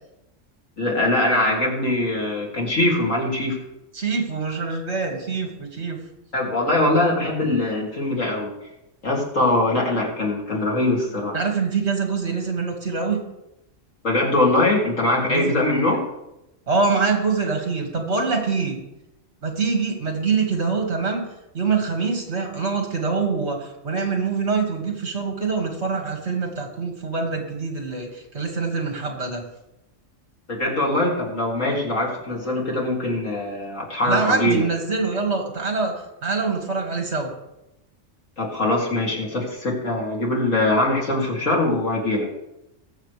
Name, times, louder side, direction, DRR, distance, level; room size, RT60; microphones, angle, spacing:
voice 1, 0.8-3.6 6.3-8.5 9.0-11.4 14.0-16.0 30.5-34.7 38.4-42.3, left 2 dB, 85° left, -2 dB, 3.1 m, -22 dB
voice 2, 3.9-6.0 11.3-13.2 15.3-15.6 16.7-18.8 19.4-21.3 21.5-29.4 34.0-36.0 36.2-37.3, right 4 dB, 60° right, 2 dB, 2.3 m, -24 dB
20.5 x 7.4 x 3.3 m, 0.90 s
omnidirectional pair, 1.3 m